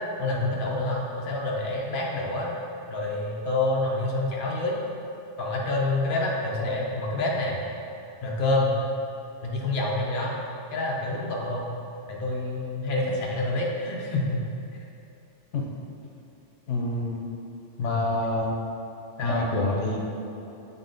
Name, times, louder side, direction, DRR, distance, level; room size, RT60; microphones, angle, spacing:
voice 1, 0.2-2.5 2.9-4.8 5.4-7.6 8.2-8.7 9.4-10.3 10.7-11.7 12.1-14.4 14.7-14.8 17.8-18.0 19.2-19.4, left 2 dB, 50° left, -3 dB, 0.9 m, -27 dB
voice 2, 16.7-17.2 17.8-18.5 19.2-20.0, left 2 dB, 85° left, -1 dB, 1.1 m, -27 dB
7.3 x 4.1 x 3.9 m, 2.9 s
omnidirectional pair, 1.2 m